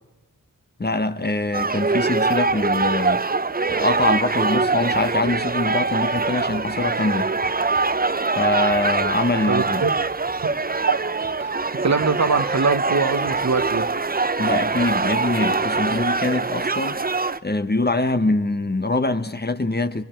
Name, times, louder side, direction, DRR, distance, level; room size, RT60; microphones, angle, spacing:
voice 1, 0.8-3.2 3.7-7.3 8.4-9.8 14.4-17.0 17.4-20.0, left 2 dB, 30° left, 1.1 m, -24 dB
sound 1, 1.5-17.4, right 3 dB, 25° right, 0.7 m, -23 dB
voice 2, 9.5-9.9 10.9-11.0 11.4-11.5 11.8-13.9, right 4 dB, 50° right, 1.1 m, -22 dB
29.5 x 23.5 x 4.5 m
wide cardioid pair, 95°, 35 cm